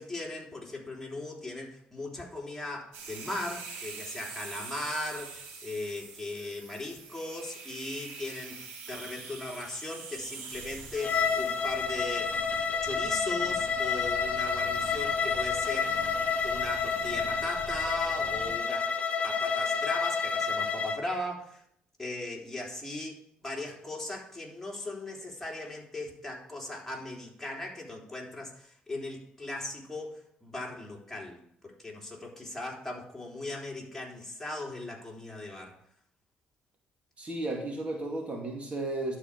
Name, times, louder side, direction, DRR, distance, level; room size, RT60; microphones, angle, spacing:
voice 1, 0.0-12.4 12.8-16.1 16.4-18.9 19.2-21.6 22.0-31.4 31.8-35.8, left 2 dB, 10° left, -2 dB, 3.5 m, -38 dB
sound 1, 2.9-18.7, right 4 dB, 85° right, 3.3 m, -46 dB
sound 2, 10.5-18.5, right 3 dB, 70° right, 2.5 m, -48 dB
Bowed string instrument, 11.0-21.0, left 5 dB, 45° left, 1.2 m, -29 dB
voice 2, 37.2-39.2, right 2 dB, 40° right, 1 dB, 2.3 m, -34 dB
11.5 x 5.0 x 7.4 m, 0.70 s
supercardioid pair, 70°, 3 cm